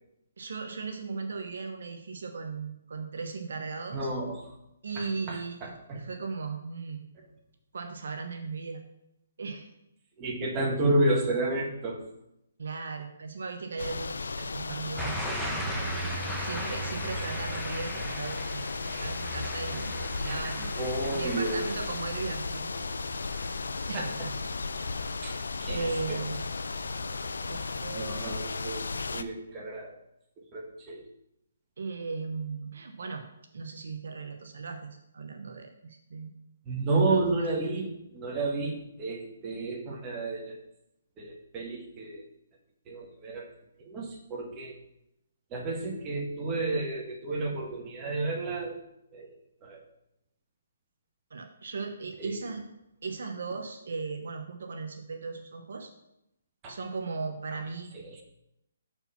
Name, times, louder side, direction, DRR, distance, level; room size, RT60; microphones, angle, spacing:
voice 1, 0.4-4.1 4.8-7.1 7.7-8.8 9.4-9.7 12.6-15.3 15.7-15.9 16.2-20.7 21.1-22.9 23.9-24.0 25.7-26.4 27.5-28.3 31.8-33.2 33.5-36.3 37.1-37.9 51.3-52.6 53.0-55.9 56.7-57.9, right 4 dB, 70° right, 6 dB, 0.8 m, -37 dB
voice 2, 3.9-4.4 5.0-6.0 10.2-12.0 20.8-21.6 23.9-24.3 25.2-26.2 27.9-29.9 30.4-31.0 36.6-37.9 38.1-40.6 41.2-42.3 42.9-43.5 43.8-44.8 45.5-48.8 49.1-49.4 49.6-49.8 52.2-52.4 56.6-56.8 57.5-57.6 57.9-58.2, right 2 dB, 25° right, 0 dB, 1.5 m, -31 dB
sound 1, 13.8-29.2, left 4 dB, 80° left, 0.4 m, -35 dB
sound 2, 15.0-25.8 26.2-26.6, right 2 dB, 5° right, 0.8 m, -39 dB
6.8 x 4.5 x 5.7 m, 0.83 s
hypercardioid pair, 145°, 0 cm